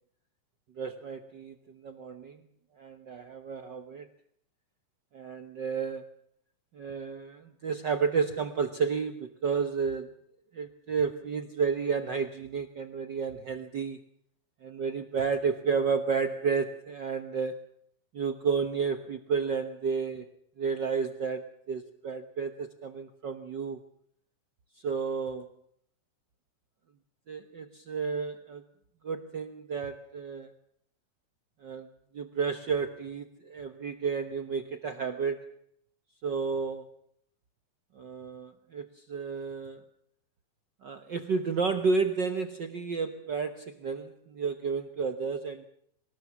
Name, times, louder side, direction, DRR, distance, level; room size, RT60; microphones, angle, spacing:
voice 1, 0.8-2.4 2.8-4.1 5.1-6.1 6.7-10.2 10.5-14.0 14.6-17.7 18.1-23.8 24.8-25.5 27.3-28.6 29.0-30.5 31.6-31.9 32.1-35.5 36.2-36.9 37.9-39.8 40.8-45.7, right 5 dB, 70° right, 9 dB, 1.0 m, -31 dB
24.0 x 19.5 x 7.1 m, 0.67 s
omnidirectional pair, 3.6 m